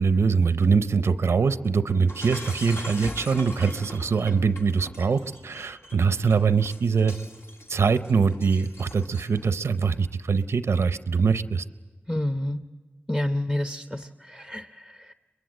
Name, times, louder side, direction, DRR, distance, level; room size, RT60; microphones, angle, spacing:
voice 1, 0.0-7.1 7.7-11.6, right 5 dB, 85° right, 12 dB, 0.6 m, -23 dB
Shatter, 2.1-9.5, left 1 dB, 75° left, 2.1 m, -41 dB
voice 2, 12.1-12.6 13.1-15.1, left 1 dB, 15° left, 8 dB, 0.8 m, -29 dB
23.5 x 21.5 x 7.7 m, 1.3 s
cardioid pair, 45°, 4 cm